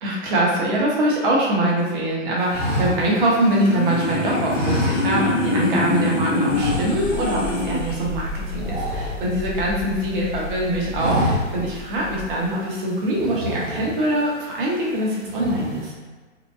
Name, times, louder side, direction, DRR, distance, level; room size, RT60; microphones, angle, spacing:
voice 1, 0.0-15.9, right 1 dB, 45° right, -4 dB, 0.8 m, -23 dB
sound 1, 2.5-4.0 4.5-5.6 5.8-6.0 6.4-7.3 7.6-7.8 8.1-9.8 10.3-10.5 10.8-11.8 12.2-12.3 13.1-14.2 14.7-15.0 15.3-15.9, equal, 80° right, 0.9 m, -27 dB
sound 2, 3.1-8.0, left 2 dB, 80° left, 0.7 m, -24 dB
sound 3, 6.6-12.5, left 2 dB, 30° left, 0.4 m, -33 dB
2.8 x 2.1 x 2.3 m, 1.3 s
figure-of-eight pair, 115°, 37 cm